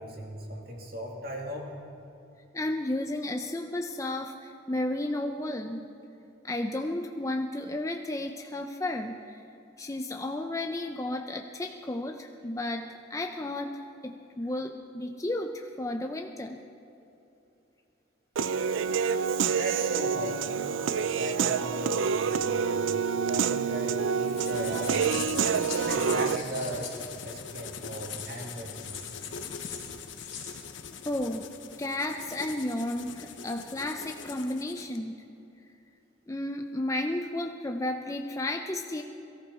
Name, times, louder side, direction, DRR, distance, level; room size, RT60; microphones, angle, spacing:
voice 1, 0.0-1.7 19.5-22.9 23.1-25.1 25.5-28.9, equal, 50° right, -1 dB, 2.5 m, -37 dB
voice 2, 2.5-5.8 6.4-9.2 9.8-16.6 31.1-31.5 31.8-35.2 36.3-39.0, left 1 dB, 15° left, 4 dB, 0.5 m, -33 dB
Human voice / Piano, 18.4-26.4, right 6 dB, 80° right, 0.4 m, -27 dB
sound 1, 24.2-35.0, left 7 dB, 75° left, 0.9 m, -42 dB
sound 2, 24.6-27.4 27.9-30.6, left 7 dB, 45° left, 3.6 m, -44 dB
22.5 x 14.0 x 4.2 m, 2.8 s
head